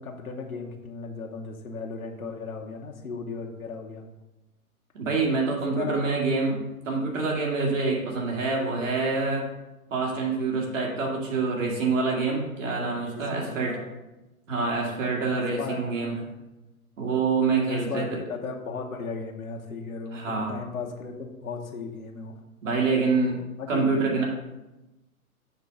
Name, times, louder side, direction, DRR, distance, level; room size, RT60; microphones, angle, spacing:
voice 1, 0.0-4.0 5.8-6.0 12.8-13.9 15.2-16.3 17.6-22.3 23.6-23.8, left 4 dB, 70° left, 1 dB, 1.1 m, -36 dB
voice 2, 4.9-6.6 6.8-9.5 9.9-13.8 14.5-16.1 17.0-18.2 20.1-20.5 22.6-23.4 23.7-24.2, right 4 dB, 60° right, -1 dB, 2.1 m, -26 dB
7.0 x 3.8 x 5.2 m, 1.0 s
figure-of-eight pair, 115°, 43 cm